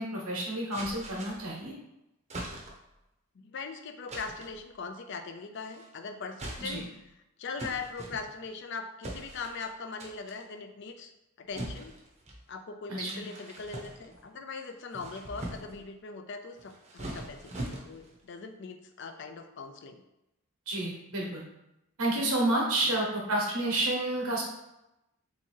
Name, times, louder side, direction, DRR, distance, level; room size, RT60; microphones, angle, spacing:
voice 1, 0.0-1.7 6.6-6.8 12.9-13.2 20.7-21.4 22.0-24.4, right 1 dB, 90° right, -2 dB, 1.3 m, -30 dB
sound 1, 0.7-1.6 2.3-2.9 4.1-4.6 5.5-5.9 6.3-7.0 7.6-8.6 9.0-9.7 10.0-10.4 11.5-12.4 13.0-14.3 14.8-15.8 16.6-18.2, right 1 dB, 30° right, 0.7 m, -42 dB
voice 2, 3.4-6.8 7.4-11.1 11.4-11.9 12.5-20.0 22.8-23.0, left 4 dB, 55° left, 7 dB, 0.4 m, -40 dB
3.6 x 3.0 x 4.3 m, 0.91 s
head